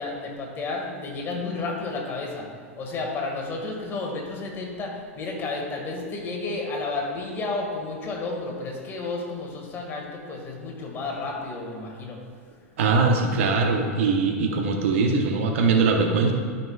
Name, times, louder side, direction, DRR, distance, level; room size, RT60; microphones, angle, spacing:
voice 1, 0.0-2.5 2.8-12.2, left 3 dB, 30° left, 0 dB, 1.9 m, -32 dB
voice 2, 12.8-16.3, right 4 dB, 65° right, 3 dB, 1.0 m, -21 dB
12.0 x 5.8 x 2.4 m, 2.1 s
hypercardioid pair, 100°, 8 cm